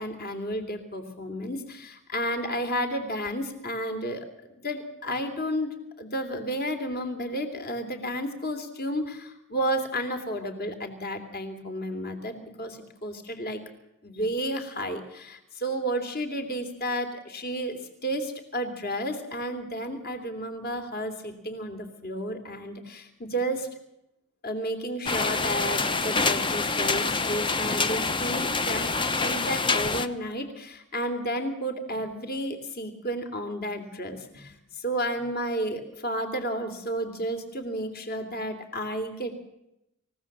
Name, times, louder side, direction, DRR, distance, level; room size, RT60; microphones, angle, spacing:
voice 1, 0.0-5.7 6.0-13.6 14.0-23.7 24.4-39.4, equal, 45° left, 6 dB, 3.0 m, -32 dB
sound 1, 25.1-30.1, left 4 dB, 20° left, 0.9 m, -26 dB
27.0 x 16.0 x 7.5 m, 0.86 s
head